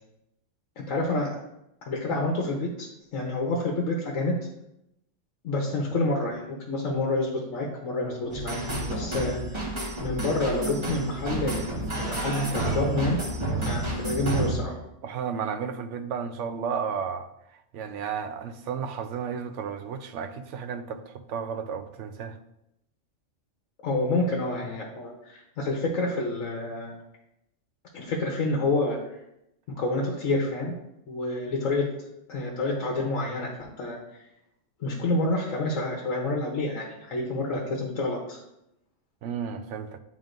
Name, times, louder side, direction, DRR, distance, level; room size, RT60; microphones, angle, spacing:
voice 1, 0.8-1.4 1.8-4.4 5.4-8.6 8.9-9.6 10.0-11.7 12.0-13.2 13.6-14.8 23.8-26.9 27.9-29.0 29.8-30.7 31.1-31.9 32.3-34.2 34.8-38.4, left 2 dB, 75° left, -1 dB, 1.3 m, -28 dB
sound 1, 8.3-14.5, right 1 dB, 25° right, 1.3 m, -30 dB
voice 2, 15.0-22.4 39.2-40.0, right 6 dB, 70° right, 8 dB, 0.9 m, -33 dB
10.5 x 3.6 x 2.6 m, 0.84 s
omnidirectional pair, 1.3 m